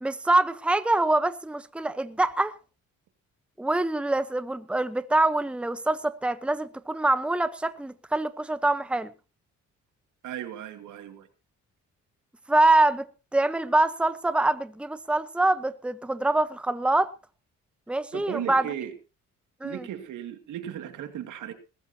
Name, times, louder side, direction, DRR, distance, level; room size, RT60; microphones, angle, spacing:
voice 1, 0.0-2.5 3.6-9.1 12.5-13.0 13.3-17.1 17.9-18.7 19.6-19.9, right 2 dB, 5° right, 0.9 m, -24 dB
voice 2, 10.2-11.3 18.1-18.9 19.6-21.5, right 10 dB, 80° right, 2.5 m, -36 dB
21.0 x 14.0 x 2.9 m
cardioid pair, 90°, 30 cm